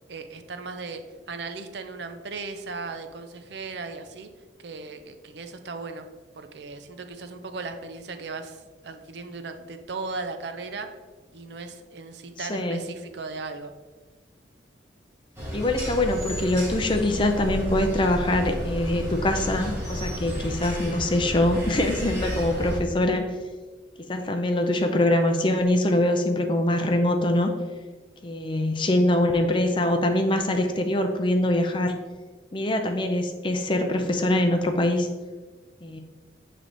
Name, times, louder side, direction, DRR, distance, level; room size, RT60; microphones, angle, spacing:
voice 1, 0.1-1.0 1.3-4.3 4.6-6.1 6.3-10.9 11.3-13.7, right 4 dB, 65° right, 7 dB, 0.5 m, -37 dB
voice 2, 12.5-12.9 15.5-23.3 24.1-27.5 28.2-32.0 32.5-35.1 35.8-36.0, left 1 dB, 25° left, 5 dB, 0.5 m, -23 dB
sound 1, 15.4-22.8, equal, 15° right, 1.4 m, -32 dB
7.5 x 3.3 x 3.8 m, 1.3 s
head